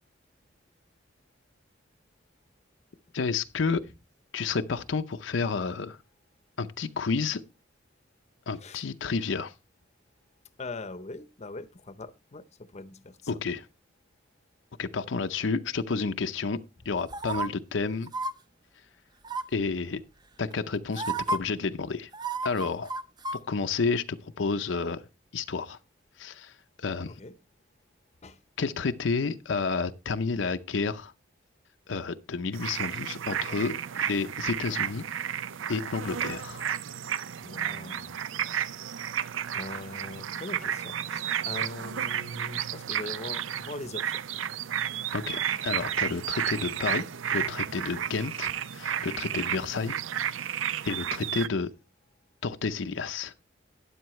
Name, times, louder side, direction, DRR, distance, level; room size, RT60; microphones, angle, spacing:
voice 1, 3.1-3.8 4.3-6.0 6.6-7.4 8.5-9.5 13.3-13.7 14.8-16.6 16.8-18.1 19.5-20.0 20.4-22.1 22.4-22.9 23.5-25.0 25.3-25.8 26.2-27.1 28.6-31.1 31.9-35.0 35.7-36.6 45.1-47.0 47.3-50.0 50.8-51.7 52.4-53.3, left 4 dB, 70° left, 0.6 m, -30 dB
voice 2, 10.6-13.2 27.1-27.3 28.2-28.4 37.4-38.3 39.5-44.2, left 2 dB, 35° left, 0.7 m, -41 dB
sound 1, 17.1-17.5 18.1-18.3 19.2-19.6 20.5-20.6 20.9-21.4 22.1-23.4 23.7-23.8, right 3 dB, 20° right, 0.6 m, -31 dB
sound 2, 32.5-51.5, right 9 dB, 80° right, 0.5 m, -32 dB
12.5 x 9.7 x 3.1 m
head